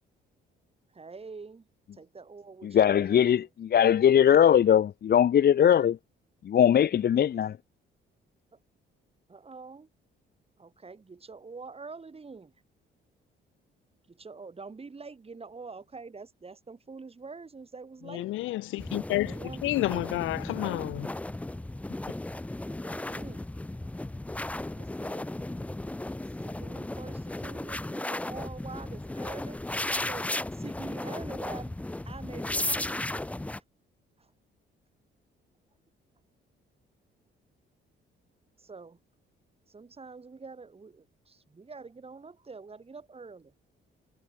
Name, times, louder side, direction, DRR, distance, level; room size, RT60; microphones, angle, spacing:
voice 1, 0.9-1.7 1.9-3.5 8.5-8.6 9.3-9.9 10.6-12.5 14.1-18.3 19.2-20.1 22.7-23.5 24.7-25.3 26.4-29.6 29.9-31.7 32.0-33.2 34.2-34.3 38.6-39.0 39.7-43.5, right 4 dB, 30° right, 6.2 m, -46 dB
voice 2, 2.7-6.0 6.4-7.5, left 9 dB, 55° left, 1.0 m, -20 dB
voice 3, 18.1-19.3 19.6-21.1, left 16 dB, 80° left, 0.6 m, -30 dB
sound 1, 18.8-33.6, left 1 dB, 5° left, 0.5 m, -35 dB
cardioid pair, 90°, 20 cm